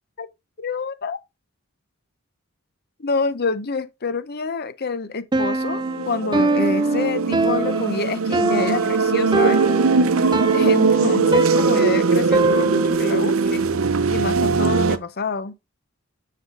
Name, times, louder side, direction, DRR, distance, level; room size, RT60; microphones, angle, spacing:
voice 1, 0.6-1.2 3.0-9.6 10.5-13.6 14.1-15.5, left 4 dB, 50° left, 0.8 m, -27 dB
Piano, 5.3-13.2, right 2 dB, 20° right, 0.5 m, -23 dB
sound 1, 5.6-15.0, right 4 dB, 75° right, 0.7 m, -20 dB
7.9 x 5.5 x 3.8 m
head